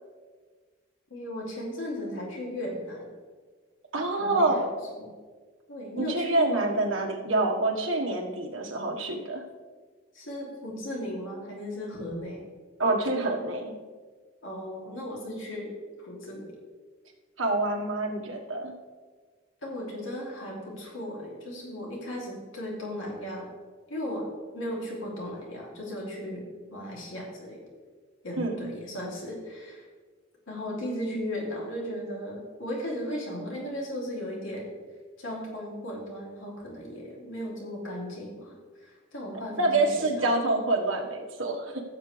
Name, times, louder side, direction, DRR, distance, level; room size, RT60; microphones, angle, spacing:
voice 1, 1.1-3.1 4.2-4.6 5.0-5.1 5.7-6.7 10.1-12.4 14.4-16.5 19.6-23.5 23.9-24.3 24.5-26.4 26.7-27.6 28.2-29.9 30.5-34.7 35.2-38.5 38.8-39.9 40.1-40.3, equal, 80° left, -3 dB, 3.0 m, -36 dB
voice 2, 3.9-4.7 6.0-9.4 12.8-13.7 17.4-18.7 28.4-28.7 39.6-41.8, right 2 dB, 90° right, 1 dB, 1.6 m, -27 dB
15.5 x 7.4 x 3.4 m, 1.5 s
head